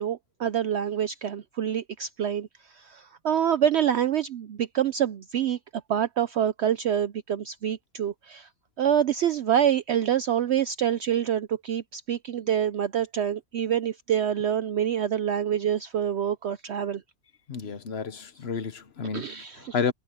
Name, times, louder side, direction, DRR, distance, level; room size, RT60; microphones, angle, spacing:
voice 1, 0.0-5.6 5.9-8.5 8.8-17.0 19.1-19.7, right 9 dB, 65° right, 0.7 m, -26 dB
voice 2, 17.5-19.9, left 6 dB, 50° left, 1.1 m, -31 dB
omnidirectional pair, 1.5 m